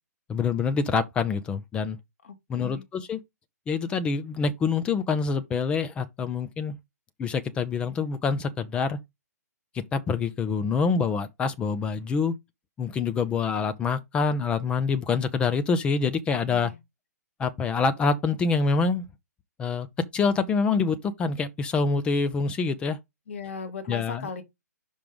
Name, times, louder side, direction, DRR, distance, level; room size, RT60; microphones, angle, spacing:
voice 1, 0.3-2.0 2.5-3.2 3.7-6.8 7.2-9.0 9.7-12.3 12.8-16.7 17.4-19.0 19.6-19.9 20.1-23.0 23.9-24.3, left 5 dB, 10° left, 0.6 m, -26 dB
voice 2, 2.2-2.8 16.5-16.8 23.3-24.4, left 5 dB, 50° left, 2.5 m, -37 dB
5.8 x 5.1 x 5.1 m
figure-of-eight pair, 130°, 9 cm